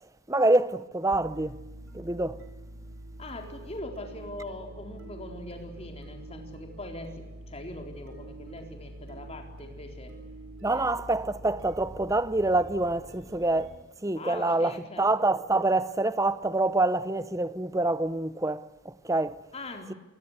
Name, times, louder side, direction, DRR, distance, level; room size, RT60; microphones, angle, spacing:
voice 1, 0.3-1.6 1.9-2.4 10.6-13.8 14.0-19.4, right 2 dB, 15° right, 0.8 m, -26 dB
sound 1, 1.1-13.8, right 1 dB, 65° right, 5.8 m, -45 dB
voice 2, 3.2-10.1 10.6-11.1 14.1-15.1 19.5-19.9, left 1 dB, 30° left, 4.2 m, -42 dB
27.5 x 21.5 x 8.2 m
head